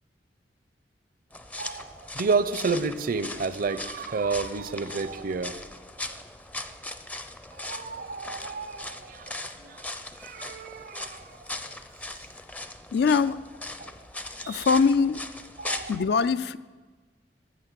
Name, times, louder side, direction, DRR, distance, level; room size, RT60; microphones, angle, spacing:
sound 1, 1.3-16.0, left 2 dB, 10° left, 0.5 m, -39 dB
voice 1, 1.6-5.6 7.7-9.3 9.6-9.8 10.2-11.2 13.8-13.9 14.4-14.7 15.6-15.9, right 4 dB, 55° right, 14 dB, 0.6 m, -30 dB
voice 2, 12.9-13.4 14.5-15.2 15.9-16.6, left 5 dB, 65° left, 15 dB, 0.4 m, -22 dB
13.5 x 6.4 x 7.5 m, 1.4 s
head